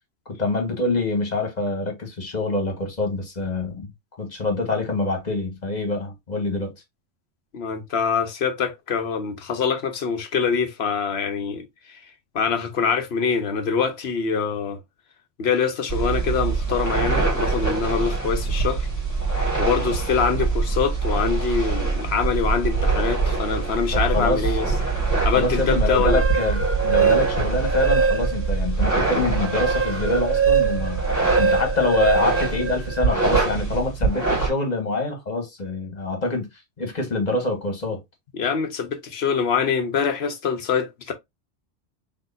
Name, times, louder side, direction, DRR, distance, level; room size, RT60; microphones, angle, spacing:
voice 1, 0.3-3.9 4.2-6.7 23.9-24.5 25.3-31.0 31.4-36.5 36.8-38.0, left 3 dB, 35° left, 1.6 m, -25 dB
voice 2, 7.5-12.0 12.3-14.8 15.4-18.9 19.6-24.7 25.2-26.2 38.3-41.1, left 6 dB, 65° left, 1.2 m, -24 dB
sound 1, 15.9-34.5, right 4 dB, 15° left, 1.8 m, -24 dB
sound 2, 25.9-28.6 29.0-33.3, right 5 dB, 20° right, 0.3 m, -23 dB
6.3 x 3.2 x 2.6 m
omnidirectional pair, 1.2 m